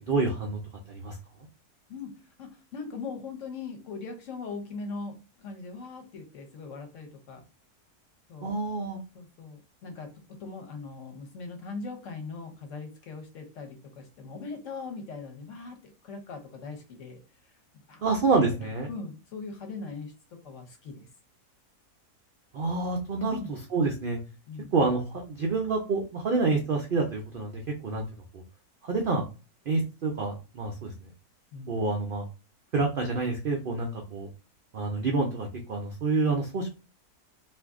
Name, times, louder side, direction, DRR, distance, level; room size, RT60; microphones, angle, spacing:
voice 1, 0.1-0.6 0.9-1.2 8.4-9.0 18.0-18.9 22.5-24.2 24.7-28.0 28.8-29.2 29.7-30.9 31.7-32.2 32.7-34.3 34.7-36.7, right 3 dB, 80° right, 1 dB, 0.4 m, -28 dB
voice 2, 2.4-7.4 8.3-8.5 9.1-17.2 17.9-18.0 18.5-21.1 23.2-23.5 24.5-24.7 31.5-31.7, left 4 dB, 60° left, 4 dB, 1.0 m, -40 dB
2.6 x 2.5 x 3.5 m, 0.31 s
omnidirectional pair, 1.6 m